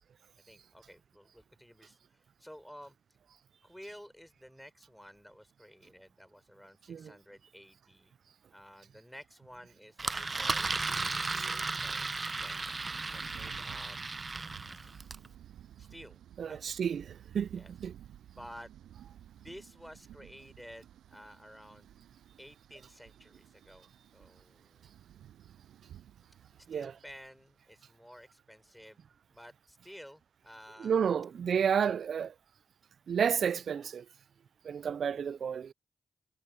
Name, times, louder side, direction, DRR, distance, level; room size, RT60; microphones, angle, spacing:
voice 1, 0.5-2.9 3.6-8.1 8.5-10.7 11.0-12.1 12.4-12.7 13.1-14.0 15.8-16.2 16.5-16.7 17.5-17.7 18.3-18.7 19.4-21.9 22.4-24.9 26.6-29.0 29.3-31.0, equal, 5° left, 5.1 m, -52 dB
Engine, 10.0-15.3, right 3 dB, 40° right, 0.7 m, -35 dB
sound 1, 12.3-27.6, right 11 dB, 90° right, 7.4 m, -55 dB
voice 2, 16.4-17.9 26.7-27.0 30.8-32.3 33.1-34.1 34.6-35.7, right 7 dB, 75° right, 0.4 m, -31 dB
supercardioid pair, 40°, 0 cm